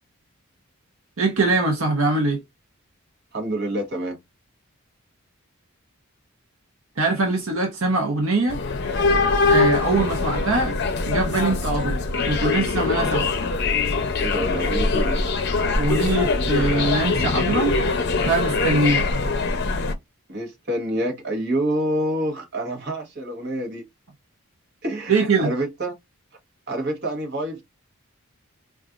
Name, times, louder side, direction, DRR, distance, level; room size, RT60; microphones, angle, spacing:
voice 1, 1.2-2.4 7.0-8.6 9.5-10.8 11.1-13.3 15.7-17.8 18.3-19.1 25.1-25.5, right 3 dB, 65° right, 0.8 m, -22 dB
voice 2, 3.3-4.2 14.2-15.2 20.3-23.8 24.8-25.9 26.7-27.6, right 1 dB, 50° right, 1.1 m, -27 dB
sound 1, 8.5-19.9, left 3 dB, 50° left, 0.6 m, -22 dB
4.0 x 2.4 x 2.4 m
head